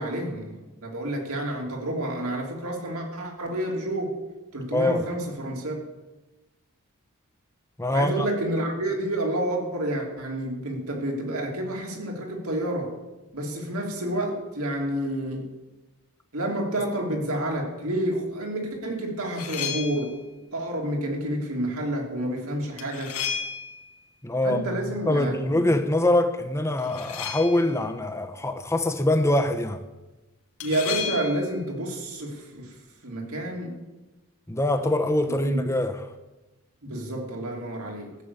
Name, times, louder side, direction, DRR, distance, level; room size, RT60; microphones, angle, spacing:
voice 1, 0.0-4.2 4.5-5.9 7.9-12.9 13.3-15.5 16.3-20.1 20.5-23.1 24.4-25.7 30.6-32.7 33.0-33.7 35.4-35.6 36.8-38.2, right 1 dB, 75° right, 3.2 m, -29 dB
voice 2, 7.8-8.3 24.2-29.8 34.5-36.1, left 1 dB, 15° left, 0.9 m, -24 dB
sound 1, 19.2-20.2 22.8-24.0 26.8-27.8 30.6-31.6, left 8 dB, 90° left, 1.9 m, -33 dB
15.0 x 7.1 x 8.3 m
head